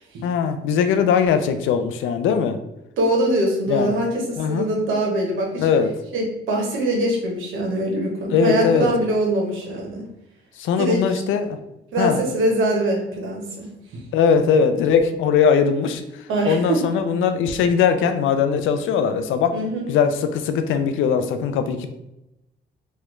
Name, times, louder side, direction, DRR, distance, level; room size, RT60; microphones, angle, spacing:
voice 1, 0.2-2.6 3.7-3.9 4.4-4.7 5.6-5.9 8.3-8.9 10.6-11.6 12.0-12.2 14.1-19.5 19.9-21.9, left 6 dB, 80° left, 8 dB, 0.4 m, -20 dB
voice 2, 3.0-5.7 6.1-10.0 10.8-11.2 11.9-13.7 16.3-16.8 19.5-19.8, right 1 dB, 85° right, 0 dB, 0.9 m, -23 dB
3.1 x 2.3 x 3.0 m, 0.89 s
cardioid pair, 90°, 20 cm